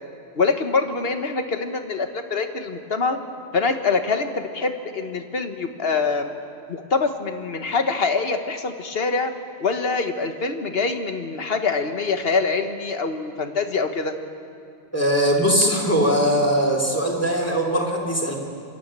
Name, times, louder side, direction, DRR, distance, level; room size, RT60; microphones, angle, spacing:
voice 1, 0.3-3.2 3.5-6.3 6.7-9.3 9.6-14.1, left 4 dB, 55° left, 7 dB, 1.5 m, -24 dB
voice 2, 14.9-18.4, equal, 10° left, 0 dB, 3.1 m, -20 dB
26.0 x 13.0 x 8.8 m, 2.4 s
omnidirectional pair, 1.2 m